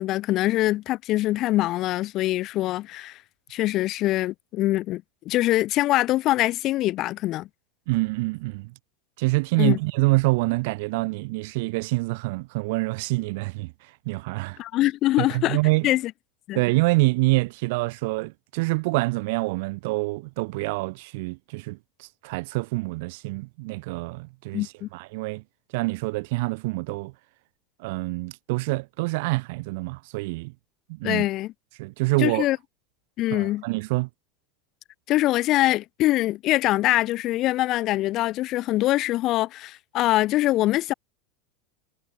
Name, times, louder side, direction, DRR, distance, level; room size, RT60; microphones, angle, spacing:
voice 1, 0.0-3.2 3.5-7.5 9.6-9.8 14.6-15.6 15.8-16.1 16.5-16.6 24.5-24.9 31.0-31.5 32.2-32.6 33.2-33.6 35.1-40.9, left 16 dB, 30° left, 6.6 m, -23 dB
voice 2, 7.9-8.7 9.2-13.7 14.0-14.6 15.2-15.9 16.5-25.4 25.7-27.1 27.8-30.5 30.9-31.2 31.8-32.5 33.3-34.1, right 25 dB, 55° right, 3.3 m, -26 dB
supercardioid pair, 175°, 0 cm